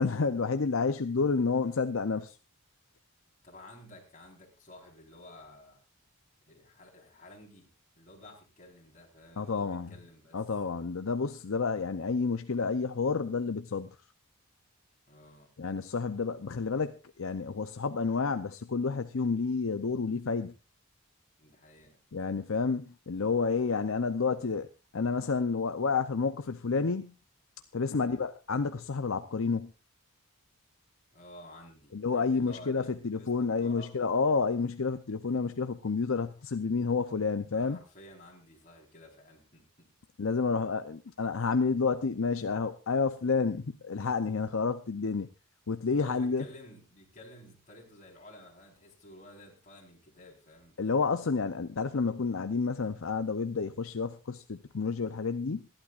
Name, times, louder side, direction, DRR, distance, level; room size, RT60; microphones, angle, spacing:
voice 1, 0.0-2.4 9.4-9.9 10.3-14.0 15.6-20.5 22.1-24.7 24.9-27.1 27.7-29.7 31.9-37.8 40.2-45.3 45.7-46.5 50.8-55.7, left 4 dB, 65° left, 0.6 m, -30 dB
voice 2, 3.4-5.8 6.5-7.7 7.9-10.4 15.1-15.5 21.4-22.0 27.9-28.2 31.1-34.0 37.5-39.6 45.9-50.7, left 1 dB, 35° left, 4.3 m, -52 dB
26.0 x 11.5 x 2.5 m
head